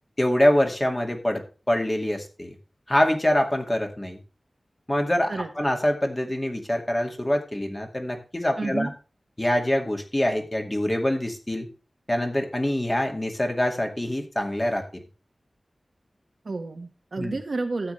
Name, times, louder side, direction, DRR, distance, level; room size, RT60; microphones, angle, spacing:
voice 1, 0.2-2.5 2.9-4.2 4.9-8.9 9.4-11.7 12.1-15.0 17.2-17.4, left 1 dB, 20° left, 3 dB, 2.1 m, -25 dB
voice 2, 8.6-8.9 16.4-17.9, right 3 dB, 65° right, 4 dB, 1.6 m, -30 dB
13.0 x 8.6 x 3.3 m, 0.33 s
wide cardioid pair, 80°, 0 cm